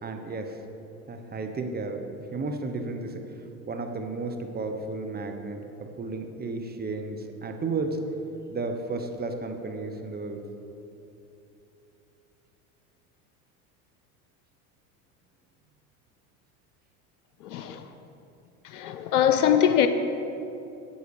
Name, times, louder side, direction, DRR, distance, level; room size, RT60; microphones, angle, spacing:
voice 1, 0.0-0.6 1.1-3.2 3.7-8.0 8.5-10.4, right 3 dB, 20° right, 1.0 m, -33 dB
voice 2, 17.4-17.8 18.6-19.9, left 9 dB, 85° left, 0.6 m, -22 dB
8.5 x 8.0 x 4.8 m
hypercardioid pair, 85°, 44 cm